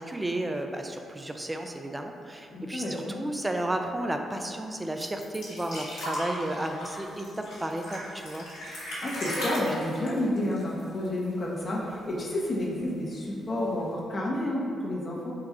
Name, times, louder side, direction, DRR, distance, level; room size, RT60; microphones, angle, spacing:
voice 1, 0.0-8.5, right 1 dB, 20° right, 4 dB, 0.4 m, -33 dB
voice 2, 2.5-3.3 9.0-15.3, left 1 dB, 45° left, -4 dB, 0.7 m, -30 dB
sound 1, 5.0-11.4 11.7-11.8 12.1-12.8 13.6-13.7, left 1 dB, 80° left, 1.1 m, -36 dB
3.7 x 2.3 x 4.2 m, 2.4 s
hypercardioid pair, 45°, 0 cm